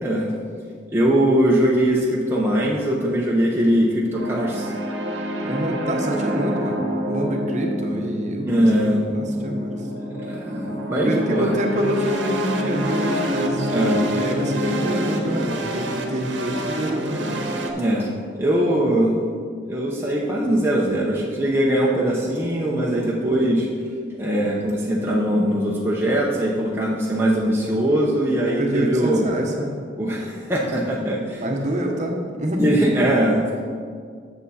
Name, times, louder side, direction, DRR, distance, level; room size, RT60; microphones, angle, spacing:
voice 1, 0.0-0.3 0.9-4.7 8.5-9.0 10.2-11.5 13.7-14.0 17.8-19.2 19.7-23.7 24.2-29.3 30.0-31.4 32.6-33.6, right 1 dB, 15° right, -4 dB, 0.8 m, -21 dB
sound 1, 4.1-17.7, equal, 75° right, 1.0 m, -27 dB
voice 2, 5.4-6.8 7.1-8.5 9.1-9.8 11.0-17.4 28.4-29.8 31.4-32.6, right 1 dB, 40° right, 1 dB, 1.0 m, -26 dB
8.9 x 6.9 x 4.1 m, 2.1 s
head